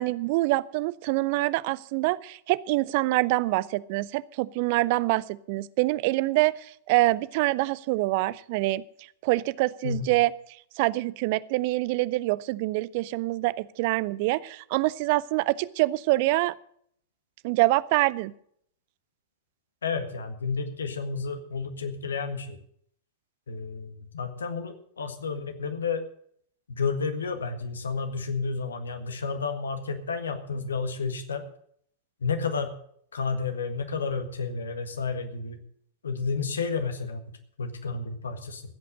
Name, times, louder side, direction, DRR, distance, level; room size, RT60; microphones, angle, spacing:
voice 1, 0.0-8.8 9.2-10.3 10.8-16.5 17.4-18.3, right 19 dB, 50° right, 20 dB, 0.4 m, -25 dB
voice 2, 19.8-22.6 23.5-26.0 26.7-31.4 32.2-32.7 33.1-35.6 36.0-37.2 37.6-38.6, left 5 dB, 70° left, 8 dB, 1.7 m, -31 dB
15.5 x 8.4 x 6.5 m, 0.65 s
figure-of-eight pair, 90°, 0 cm